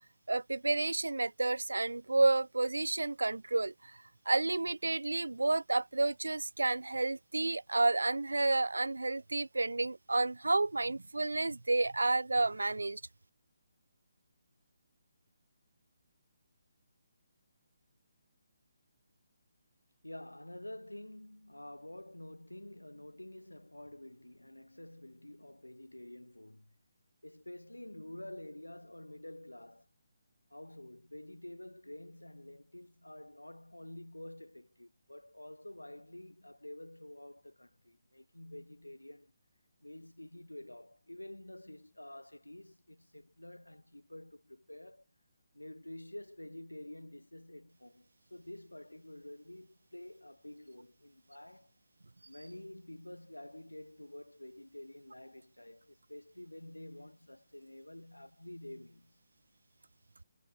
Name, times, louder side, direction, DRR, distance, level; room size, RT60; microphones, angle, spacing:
voice 1, 0.3-13.0, right 2 dB, 75° right, 0.7 m, -31 dB
voice 2, 20.0-26.7 27.2-29.9 30.5-39.3 39.8-45.1 45.5-51.7 52.3-59.2, left 1 dB, 85° left, 4.3 m, -49 dB
figure-of-eight pair, 145°, 0 cm